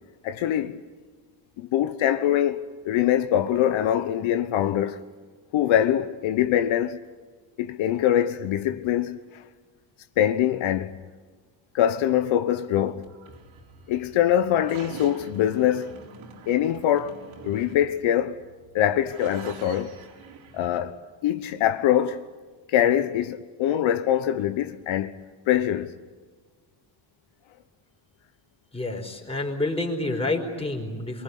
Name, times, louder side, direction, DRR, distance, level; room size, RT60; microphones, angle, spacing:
voice 1, 0.2-0.8 1.6-5.0 5.5-7.0 7.6-9.4 10.2-11.0 11.7-13.1 13.9-15.9 16.5-17.2 17.4-18.4 18.7-20.0 20.5-20.9 21.2-22.3 22.7-25.2 25.5-26.0, left 11 dB, 70° left, 1.2 m, -23 dB
sound 1, 13.0-20.8, right 5 dB, 80° right, 5.0 m, -45 dB
voice 2, 28.7-31.2, left 2 dB, 10° left, 4.5 m, -28 dB
27.5 x 24.5 x 8.4 m
cardioid pair, 150°, 48 cm